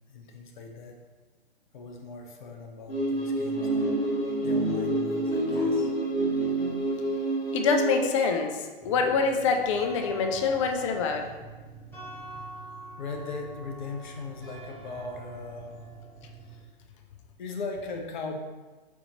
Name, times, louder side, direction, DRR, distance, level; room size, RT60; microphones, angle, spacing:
voice 1, 0.1-1.0 1.7-3.9 4.4-5.9 13.0-15.8 16.4-16.7 17.4-18.4, left 3 dB, 55° left, 2 dB, 0.8 m, -39 dB
sound 1, 2.9-8.1, right 1 dB, 90° left, 1.3 m, -27 dB
voice 2, 7.5-11.2, left 5 dB, 35° left, 4 dB, 0.4 m, -25 dB
sound 2, 8.8-16.6, right 1 dB, 5° left, 1.1 m, -45 dB
4.3 x 4.0 x 3.0 m, 1.3 s
hypercardioid pair, 130°, 29 cm